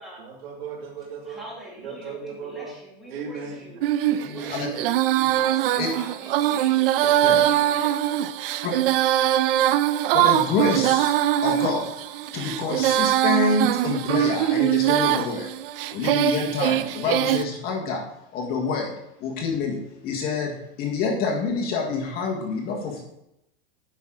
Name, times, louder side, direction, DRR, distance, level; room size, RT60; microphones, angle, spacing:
voice 1, 0.2-1.4 1.8-2.7 3.1-3.9 4.2-5.4 8.2-8.3, right 5 dB, 90° right, 0 dB, 2.4 m, -37 dB
voice 2, 1.2-3.8 4.0-5.0 5.3-8.0, right 1 dB, ahead, -6 dB, 2.3 m, -43 dB
Female singing, 3.8-17.4, right 13 dB, 70° right, 0.5 m, -22 dB
voice 3, 10.1-11.1 11.4-11.9 12.3-15.5 15.9-18.0 18.3-18.9 19.2-23.0, left 4 dB, 30° left, 0 dB, 1.6 m, -27 dB
9.2 x 5.7 x 3.8 m, 0.82 s
supercardioid pair, 160°, 29 cm